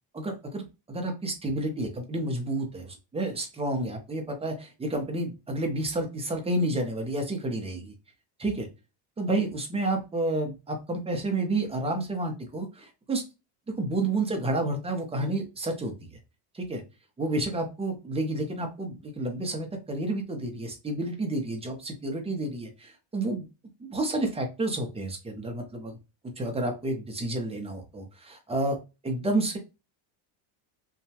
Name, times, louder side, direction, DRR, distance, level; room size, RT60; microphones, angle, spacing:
voice 1, 0.1-7.9 8.4-8.7 9.2-13.2 13.8-15.9 16.5-16.8 17.2-23.4 23.8-26.0 26.4-28.8 29.0-29.6, right 2 dB, 15° right, 3 dB, 0.6 m, -30 dB
2.8 x 2.3 x 2.7 m, 0.27 s
cardioid pair, 130°, 48 cm